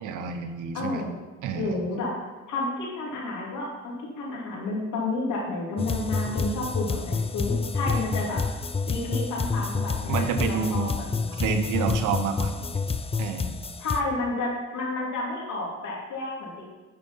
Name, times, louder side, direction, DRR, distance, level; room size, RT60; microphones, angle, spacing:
voice 1, 0.0-1.0 1.4-1.8 10.1-10.9 11.4-12.8 13.2-13.5, right 7 dB, 90° right, 6 dB, 1.0 m, -29 dB
voice 2, 0.7-1.1 1.5-2.1 2.5-8.4 8.8-11.4 13.8-16.7, left 2 dB, 80° left, -3 dB, 2.8 m, -31 dB
sound 1, 5.8-14.0, left 4 dB, 20° left, 0.5 m, -28 dB
10.5 x 4.8 x 5.6 m, 1.2 s
cardioid pair, 90°, 30 cm